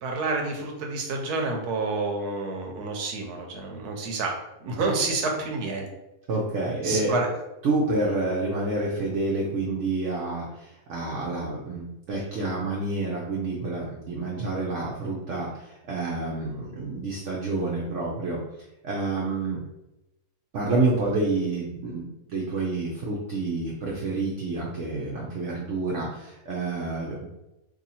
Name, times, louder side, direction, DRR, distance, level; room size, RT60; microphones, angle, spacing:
voice 1, 0.0-4.3 4.6-5.9 6.8-7.3, right 3 dB, 85° right, 2 dB, 1.2 m, -28 dB
voice 2, 6.3-7.1 7.6-18.4 18.8-19.6 20.5-27.3, right 2 dB, 60° right, -3 dB, 0.9 m, -28 dB
2.8 x 2.7 x 4.1 m, 0.95 s
omnidirectional pair, 1.6 m